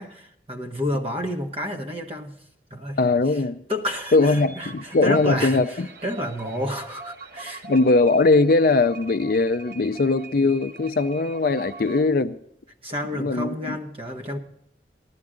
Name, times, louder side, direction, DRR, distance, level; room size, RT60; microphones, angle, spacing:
voice 1, 0.0-2.4 2.7-3.0 3.7-7.6 12.8-14.4, left 1 dB, 30° right, 1.3 m, -30 dB
voice 2, 3.0-3.6 4.1-5.9 7.6-12.4 13.1-13.8, left 3 dB, 50° left, 0.4 m, -20 dB
sound 1, 3.9-12.0, right 4 dB, 60° right, 1.2 m, -43 dB
14.5 x 11.5 x 3.7 m
head